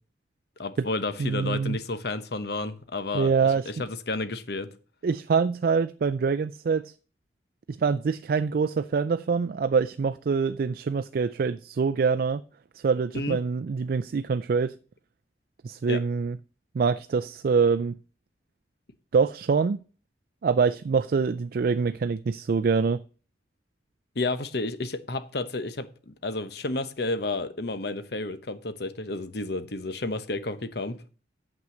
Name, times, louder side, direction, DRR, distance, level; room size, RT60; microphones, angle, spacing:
voice 1, 0.6-3.3 3.7-4.7 13.1-13.4 15.9-16.0 24.1-31.0, left 2 dB, 65° left, 1.0 m, -31 dB
voice 2, 1.2-1.8 3.1-3.7 5.0-6.9 7.7-12.4 12.8-14.7 15.6-16.4 16.7-17.9 19.1-19.8 20.4-23.0, right 5 dB, 55° right, 0.4 m, -25 dB
7.7 x 5.9 x 7.7 m
head